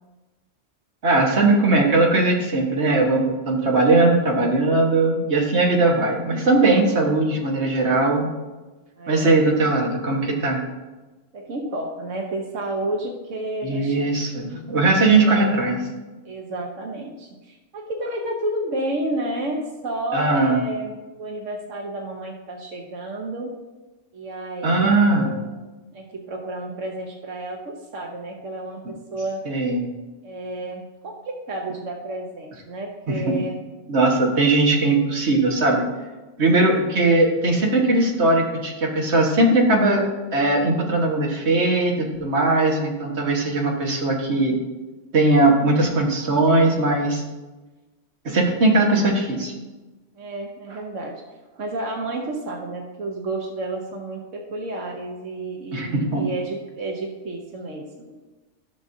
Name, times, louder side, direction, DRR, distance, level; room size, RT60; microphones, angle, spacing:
voice 1, 1.0-8.3 9.1-10.6 13.6-15.8 20.1-20.6 24.6-25.3 29.5-29.8 33.1-33.4 33.9-35.9 36.4-44.6 45.1-47.2 48.3-49.5 55.7-56.2, right 2 dB, 65° right, -1 dB, 1.7 m, -19 dB
voice 2, 9.0-9.7 11.3-14.2 15.2-15.7 16.2-23.5 24.1-25.5 25.9-29.4 30.2-31.1 31.5-33.6 50.1-51.2 51.5-58.2, right 1 dB, 90° right, 1 dB, 1.3 m, -31 dB
14.0 x 6.3 x 2.7 m, 1.2 s
omnidirectional pair, 1.3 m